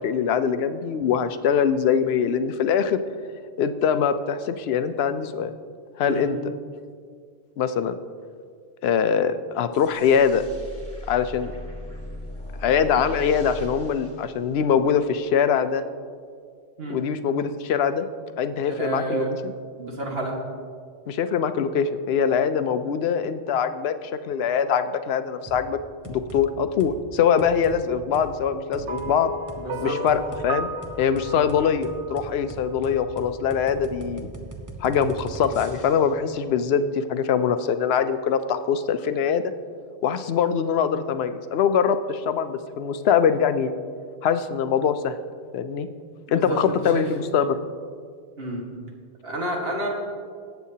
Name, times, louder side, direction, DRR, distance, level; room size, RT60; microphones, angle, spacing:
voice 1, 0.0-3.0 3.6-5.5 6.0-6.4 7.6-7.9 8.8-10.4 11.1-11.5 12.6-15.8 16.9-18.1 18.4-19.5 21.1-25.8 26.1-29.3 29.8-30.7 31.0-34.3 34.8-39.4 40.0-43.7 44.2-45.2 45.5-45.9 46.3-47.6, left 7 dB, 70° left, 11 dB, 0.8 m, -23 dB
sound 1, 9.7-15.1, left 1 dB, 10° left, 1.6 m, -38 dB
voice 2, 18.7-19.3 19.8-20.3 29.6-30.0 46.3-47.1 48.4-48.6 49.2-49.9, right 2 dB, 60° right, -1 dB, 1.9 m, -29 dB
sound 2, 25.5-25.7 26.0-26.4 26.8-27.0 27.4-27.8 28.1-28.3 28.7-29.1 29.5-29.6 30.1-30.5 30.8-36.1, right 2 dB, 20° right, 0.8 m, -39 dB
sound 3, 28.9-33.2, right 2 dB, 90° right, 1.0 m, -35 dB
19.0 x 8.1 x 2.8 m, 2.1 s
omnidirectional pair, 1.2 m